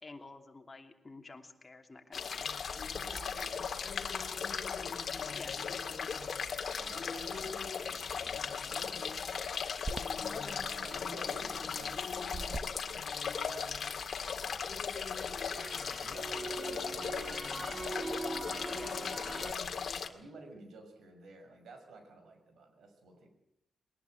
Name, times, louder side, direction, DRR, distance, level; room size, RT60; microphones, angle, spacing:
voice 1, 0.0-2.5 5.3-5.6 10.3-10.6 18.7-18.9, left 3 dB, 20° left, 3 dB, 2.9 m, -50 dB
sound 1, 2.1-20.1, left 6 dB, 50° left, 1.9 m, -37 dB
voice 2, 3.0-4.7 5.0-5.8 6.2-6.3 6.8-8.0 8.6-9.7 10.4-13.4 14.2-14.9 16.0-17.6 18.1-23.3, right 2 dB, 85° right, 5 dB, 6.5 m, -54 dB
Crackle, 9.8-14.0 14.4-19.5, right 3 dB, 20° right, 1.0 m, -42 dB
21.5 x 20.0 x 7.9 m, 0.80 s
wide cardioid pair, 155°, 0 cm